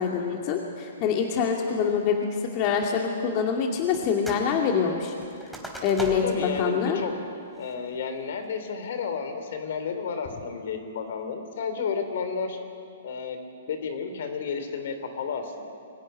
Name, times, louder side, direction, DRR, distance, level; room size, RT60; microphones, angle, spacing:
voice 1, 0.0-2.2 2.5-5.1 5.8-7.0, left 6 dB, 40° left, 1 dB, 2.5 m, -25 dB
sound 1, 3.9-4.5 4.8-6.5 6.9-7.0 7.5-7.9 8.4-8.8, right 1 dB, ahead, 4.0 m, -39 dB
voice 2, 6.1-7.1 7.6-12.6 13.0-13.4 13.7-15.6, left 5 dB, 60° left, 7 dB, 3.2 m, -32 dB
24.0 x 16.0 x 10.0 m, 2.4 s
hypercardioid pair, 120°, 0 cm